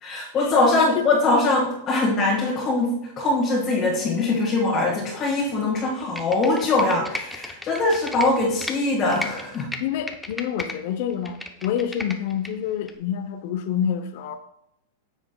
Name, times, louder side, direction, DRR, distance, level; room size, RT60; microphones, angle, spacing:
voice 1, 0.0-9.7, left 2 dB, 30° left, -5 dB, 1.6 m, -22 dB
Computer keyboard, 6.0-8.7 9.1-10.8 11.1-12.5 12.9-13.0, left 2 dB, 5° left, 0.6 m, -34 dB
voice 2, 9.8-14.4, left 9 dB, 60° left, 10 dB, 0.6 m, -27 dB
9.5 x 7.1 x 2.2 m, 0.77 s
supercardioid pair, 135°, 0 cm